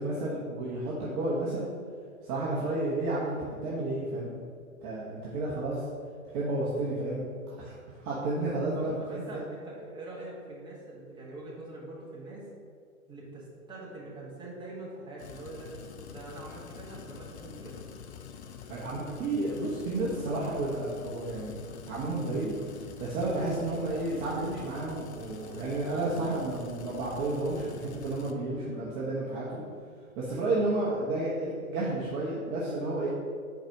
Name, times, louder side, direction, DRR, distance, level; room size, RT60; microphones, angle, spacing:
voice 1, 0.0-1.7 2.2-4.4 4.8-5.8 6.3-9.4 18.7-21.6 21.9-22.5 23.0-29.6 30.2-33.1, right 2 dB, 25° right, -7 dB, 1.1 m, -31 dB
voice 2, 8.7-12.4 13.1-15.7 16.1-17.8, right 2 dB, 10° right, -6 dB, 1.5 m, -43 dB
sound 1, 15.2-28.3, left 7 dB, 55° left, 0.6 m, -46 dB
4.7 x 4.6 x 5.9 m, 2.1 s
figure-of-eight pair, 120°, 42 cm